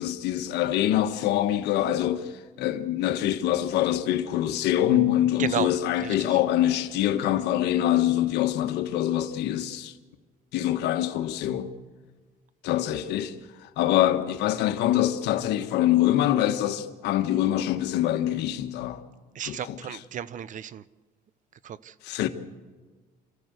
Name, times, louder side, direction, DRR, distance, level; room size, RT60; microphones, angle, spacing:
voice 1, 0.0-2.3 2.6-9.9 10.5-11.7 12.6-19.0 19.5-19.8 22.0-22.3, left 12 dB, 85° left, 1.4 m, -25 dB
voice 2, 5.4-5.7 6.0-6.4 19.3-20.8 21.6-21.9, right 9 dB, 50° right, 0.7 m, -33 dB
25.5 x 14.5 x 8.1 m
cardioid pair, 110°, 17 cm